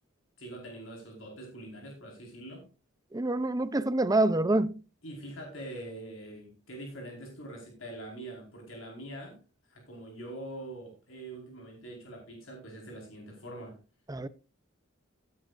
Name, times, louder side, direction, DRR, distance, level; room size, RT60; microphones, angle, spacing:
voice 1, 0.4-2.6 5.0-9.4 9.7-13.8, right 1 dB, 70° left, 4.7 m, -44 dB
voice 2, 3.1-4.7 14.1-14.3, right 2 dB, 20° right, 0.6 m, -26 dB
16.5 x 9.7 x 2.5 m
head